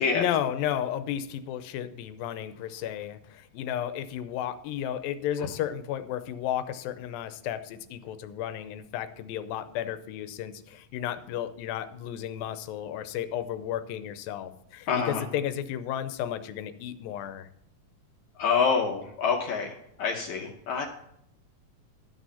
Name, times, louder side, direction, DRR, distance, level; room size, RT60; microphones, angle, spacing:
voice 1, 0.1-17.5, left 10 dB, 85° left, 12 dB, 2.5 m, -33 dB
voice 2, 14.9-15.2 18.4-19.7 20.0-20.9, left 5 dB, 65° left, 1 dB, 2.1 m, -26 dB
13.5 x 6.3 x 5.6 m, 0.78 s
omnidirectional pair, 4.0 m